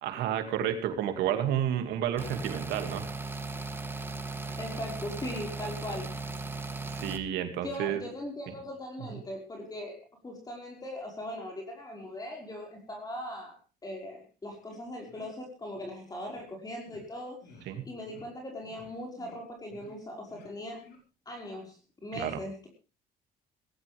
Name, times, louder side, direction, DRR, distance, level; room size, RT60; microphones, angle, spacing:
voice 1, 0.0-3.0 6.9-8.0 8.5-8.6 9.1-9.2 17.7-17.9 22.2-22.4, right 10 dB, 80° right, 7 dB, 2.5 m, -31 dB
sound 1, 2.2-7.2, right 3 dB, 15° right, 1.9 m, -37 dB
voice 2, 4.6-6.1 7.6-17.4 17.9-20.9 21.3-21.8 22.0-22.7, left 1 dB, 20° left, 0 dB, 5.4 m, -40 dB
sound 2, 14.7-14.8 15.1-15.3 15.7-15.9 16.2-16.4 16.8-17.0 17.4-17.6 18.0-18.3 18.6-18.9 19.1-19.4 19.7-20.0 20.3-20.5 20.8-21.0, left 2 dB, 70° left, 5.4 m, -54 dB
18.0 x 16.5 x 3.5 m, 0.32 s
cardioid pair, 110°, 17 cm